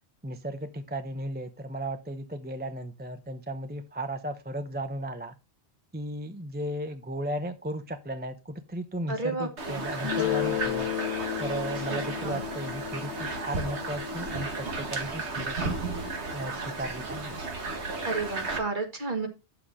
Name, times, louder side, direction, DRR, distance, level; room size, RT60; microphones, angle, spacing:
voice 1, 0.2-5.3 5.9-10.9 11.4-15.8 16.3-17.4, right 1 dB, 10° right, 8 dB, 0.6 m, -35 dB
voice 2, 9.1-9.8 11.9-12.4 18.1-19.3, right 3 dB, 45° right, 4 dB, 2.0 m, -32 dB
sound 1, 9.6-18.6, right 3 dB, 85° right, 2.0 m, -34 dB
Guitar, 10.0-15.5, left 14 dB, 65° left, 0.9 m, -34 dB
9.1 x 6.9 x 3.6 m, 0.26 s
omnidirectional pair, 1.1 m